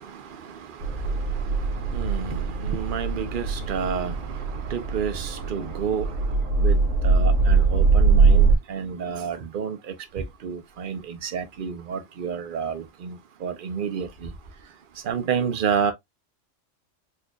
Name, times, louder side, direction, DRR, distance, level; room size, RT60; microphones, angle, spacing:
sound 1, 0.8-8.6, right 4 dB, 80° right, 1.1 m, -22 dB
voice 1, 1.9-4.2 4.7-6.1 6.6-6.8 7.0-14.3 15.0-15.9, right 7 dB, 50° right, 0.7 m, -29 dB
4.4 x 2.5 x 2.3 m
omnidirectional pair, 1.3 m